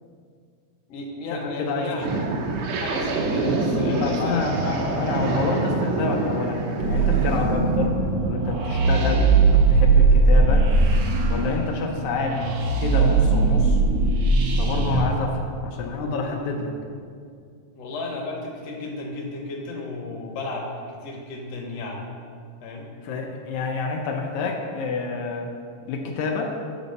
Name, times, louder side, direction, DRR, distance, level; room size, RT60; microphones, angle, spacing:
voice 1, 0.9-2.2 2.7-4.8 17.7-22.1 22.6-22.9, left 2 dB, 65° left, -1 dB, 2.1 m, -33 dB
voice 2, 1.4-2.0 4.0-8.0 8.2-9.3 9.5-10.7 11.3-13.8 14.6-16.7 23.0-25.5 25.9-26.6, left 4 dB, 85° left, 1 dB, 2.1 m, -28 dB
sound 1, 2.0-7.4, right 2 dB, 70° right, 1.4 m, -26 dB
sound 2, 6.8-15.1, right 3 dB, 90° right, 1.1 m, -19 dB
8.4 x 4.1 x 6.6 m, 2.2 s
omnidirectional pair, 3.3 m